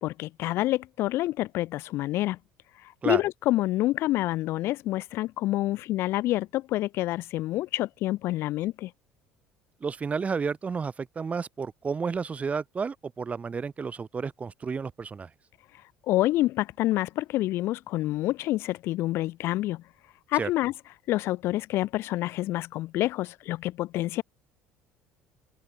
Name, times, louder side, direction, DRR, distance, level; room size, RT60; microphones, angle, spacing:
voice 1, 0.0-2.4 2.8-8.9 16.1-19.8 20.3-20.7 21.1-24.2, left 16 dB, 55° left, 1.8 m, -27 dB
voice 2, 9.8-15.3 20.3-20.5, right 5 dB, 25° right, 3.1 m, -31 dB
figure-of-eight pair, 60°, 5 cm